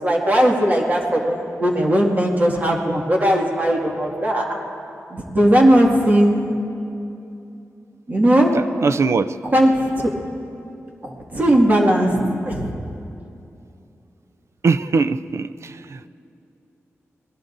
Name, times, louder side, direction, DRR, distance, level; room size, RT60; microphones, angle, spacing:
voice 1, 0.0-4.6 5.1-6.6 8.1-8.5 9.4-9.9 11.0-12.7, equal, 35° right, -1 dB, 2.0 m, -18 dB
voice 2, 8.8-9.3 14.6-15.7, right 4 dB, 65° right, 14 dB, 0.4 m, -20 dB
26.0 x 20.0 x 2.6 m, 2.7 s
wide cardioid pair, 100°, 5 cm